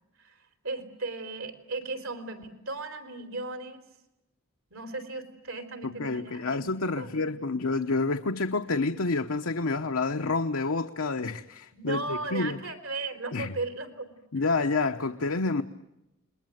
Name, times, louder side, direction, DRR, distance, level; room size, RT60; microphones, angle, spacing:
voice 1, 0.6-3.8 4.7-6.7 7.0-7.3 11.7-14.1 14.4-14.5, right 3 dB, 80° right, 3.9 m, -36 dB
voice 2, 6.0-12.6 13.3-13.5 14.3-15.6, left 3 dB, 90° left, 1.0 m, -28 dB
29.5 x 21.0 x 9.2 m
head